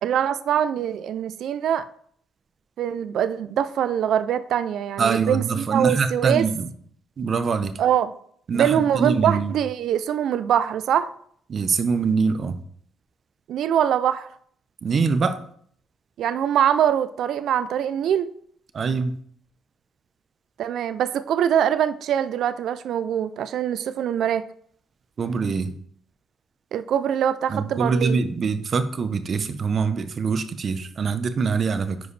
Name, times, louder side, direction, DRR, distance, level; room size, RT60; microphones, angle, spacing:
voice 1, 0.0-1.9 2.8-6.4 7.8-8.1 8.5-11.1 13.5-14.3 16.2-18.3 20.6-24.5 26.7-28.2, right 9 dB, 75° right, 0.4 m, -23 dB
voice 2, 5.0-6.7 7.2-7.8 8.5-9.6 11.5-12.6 14.8-15.4 18.7-19.1 25.2-25.7 27.5-32.0, right 5 dB, 50° right, 0.8 m, -24 dB
10.0 x 4.8 x 3.3 m
cardioid pair, 90°, 0 cm